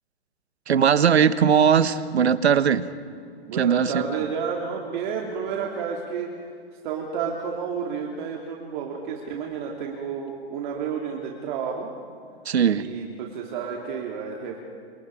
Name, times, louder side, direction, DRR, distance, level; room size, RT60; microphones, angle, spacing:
voice 1, 0.7-2.9 3.5-3.9 12.4-12.9, right 7 dB, 90° right, 14 dB, 1.3 m, -19 dB
voice 2, 3.4-6.3 6.8-11.9 12.7-14.6, right 6 dB, 50° right, -1 dB, 3.4 m, -31 dB
29.5 x 27.0 x 5.0 m, 2.3 s
hypercardioid pair, 140°, 32 cm